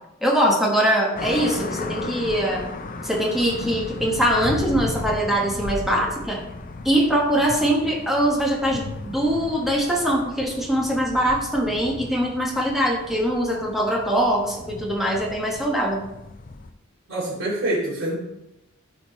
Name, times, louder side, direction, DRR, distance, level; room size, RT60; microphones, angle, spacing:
voice 1, 0.2-2.7 3.0-6.4 6.8-16.0, equal, ahead, -1 dB, 1.1 m, -22 dB
sound 1, 1.2-16.7, left 2 dB, 40° left, 0.5 m, -35 dB
voice 2, 17.1-18.1, right 1 dB, 65° right, -10 dB, 2.4 m, -25 dB
12.5 x 4.4 x 3.1 m, 0.89 s
head